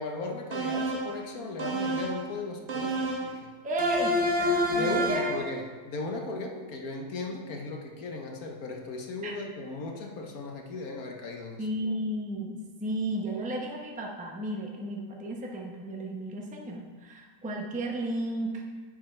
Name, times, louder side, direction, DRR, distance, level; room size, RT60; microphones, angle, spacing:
voice 1, 0.0-3.5 4.7-11.6, left 3 dB, 60° left, 2 dB, 1.4 m, -37 dB
sound 1, 0.5-1.2 1.6-2.2 2.7-3.3 3.8-5.4, equal, 45° right, 1.2 m, -28 dB
voice 2, 3.6-5.4 9.2-9.4 11.6-18.6, right 1 dB, 5° right, -1 dB, 0.6 m, -33 dB
9.7 x 7.8 x 3.3 m, 1.5 s
omnidirectional pair, 1.8 m